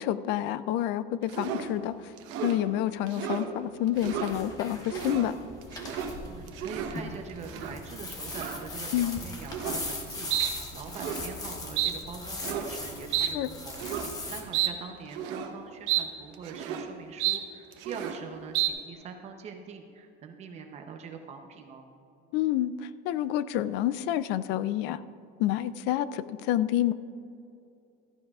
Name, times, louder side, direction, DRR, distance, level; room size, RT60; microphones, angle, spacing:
voice 1, 0.0-1.9 2.4-5.3 8.9-9.2 13.2-13.5 22.3-25.0 25.4-26.9, left 12 dB, 55° left, 15 dB, 0.4 m, -28 dB
sound 1, 1.3-1.7 2.2-2.6 3.1-3.5 3.9-4.3 4.8-5.3 5.6-6.1 6.5-7.0 7.5-7.8 8.3-8.6 9.5-9.9 10.3-10.5 10.8-11.3 11.8-11.9 12.3-12.7 13.1-13.3 13.7-14.1 14.5-14.7 15.1-15.5 15.9-16.1 16.3-16.9 17.2-17.4 17.7-18.2 18.5-18.7, right 11 dB, 60° right, 1.0 m, -31 dB
sound 2, 4.0-14.4, left 2 dB, 15° left, 1.0 m, -40 dB
voice 2, 6.3-21.9, right 5 dB, 30° right, 4 dB, 0.7 m, -43 dB
15.0 x 14.0 x 2.4 m, 2.7 s
cardioid pair, 175°, 21 cm